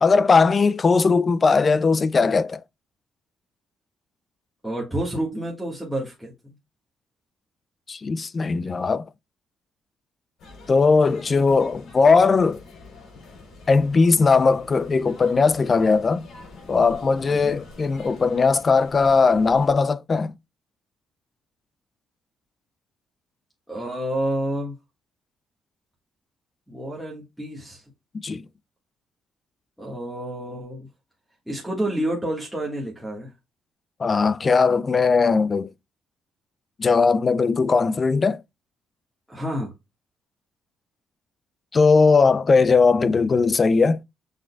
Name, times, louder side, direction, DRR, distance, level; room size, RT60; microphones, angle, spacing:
voice 1, 0.0-2.6 7.9-9.1 10.7-12.6 13.7-16.2 16.7-20.3 28.2-28.4 34.0-35.7 36.8-38.4 41.7-44.0, left 4 dB, 30° left, 0.3 m, -19 dB
voice 2, 4.6-6.5 11.1-11.2 17.3-17.6 23.7-24.7 26.7-27.8 29.8-30.9 31.5-33.3 39.3-39.7, right 1 dB, ahead, 1.4 m, -29 dB
sound 1, 10.4-19.7, left 3 dB, 65° left, 3.4 m, -45 dB
6.4 x 3.7 x 2.2 m
cardioid pair, 140°, 0 cm